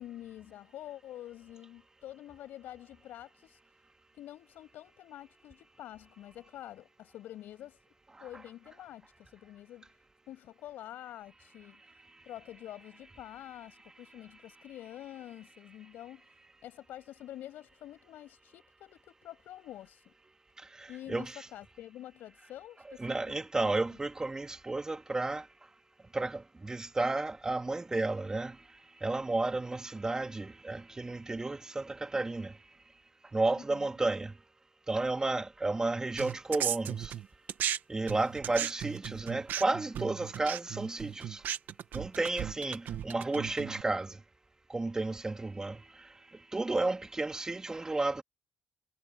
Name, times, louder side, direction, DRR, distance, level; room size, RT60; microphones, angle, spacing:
voice 1, 0.0-3.6 4.1-7.8 8.2-9.9 10.3-11.8 12.2-16.3 16.6-20.1 20.9-23.2 23.6-24.0 33.6-33.9, left 13 dB, 85° left, 7.2 m, -47 dB
voice 2, 23.0-25.4 26.1-28.5 29.0-32.5 33.3-34.3 34.9-37.1 37.9-41.4 41.9-44.1 44.7-45.8 46.5-48.2, right 2 dB, 20° right, 2.7 m, -32 dB
sound 1, 36.2-37.8 38.1-43.8, right 10 dB, 70° right, 1.6 m, -36 dB
cardioid pair, 85°, 3 cm